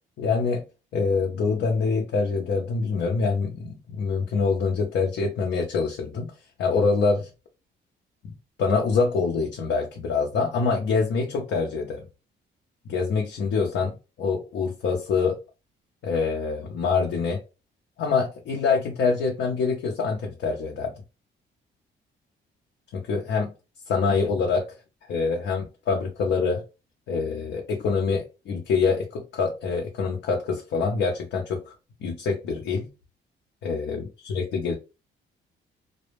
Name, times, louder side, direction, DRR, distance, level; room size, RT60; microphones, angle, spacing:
voice 1, 0.2-0.6 0.9-6.3 6.6-7.3 8.6-12.0 12.9-15.4 16.0-17.4 18.0-20.9 22.9-23.5 23.9-24.7 25.1-26.6 27.1-31.7 32.0-32.9 33.6-34.7, left 4 dB, 70° left, 1 dB, 0.6 m, -25 dB
2.2 x 2.0 x 3.0 m, 0.29 s
cardioid pair, 90°, 20 cm